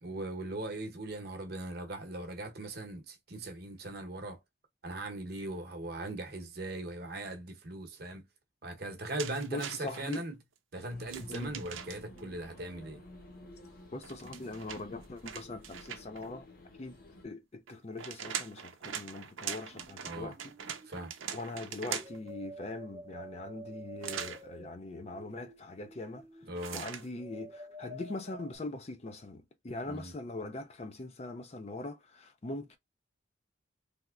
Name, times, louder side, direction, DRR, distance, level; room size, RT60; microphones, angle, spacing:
voice 1, 0.0-4.4 4.8-8.2 8.6-10.3 10.7-13.0 20.0-20.3 20.8-21.1 26.5-26.8 29.9-30.1, right 2 dB, 50° right, 0.9 m, -39 dB
sound 1, 9.2-10.2 11.1-12.2 14.0-16.3 17.7-22.3 24.0-24.4 26.6-27.1, right 8 dB, 90° right, 0.6 m, -41 dB
voice 2, 9.5-10.2 11.3-11.6 13.9-16.5 16.8-17.0 17.2-20.5 21.3-26.3 26.7-32.8, left 2 dB, 35° left, 0.4 m, -41 dB
sound 2, 10.8-17.3, left 1 dB, 50° left, 0.8 m, -53 dB
Window Wind, 12.0-12.7 19.7-28.6, right 1 dB, 30° right, 0.5 m, -50 dB
3.5 x 2.9 x 2.4 m
head